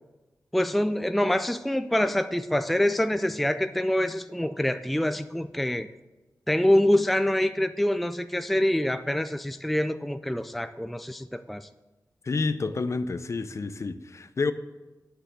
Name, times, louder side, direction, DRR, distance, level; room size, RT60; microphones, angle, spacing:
voice 1, 0.5-5.9 6.5-11.7, left 1 dB, ahead, 0.3 m, -25 dB
voice 2, 12.2-14.5, left 3 dB, 45° left, 0.6 m, -29 dB
9.6 x 6.8 x 7.6 m
wide cardioid pair, 120°, 7 cm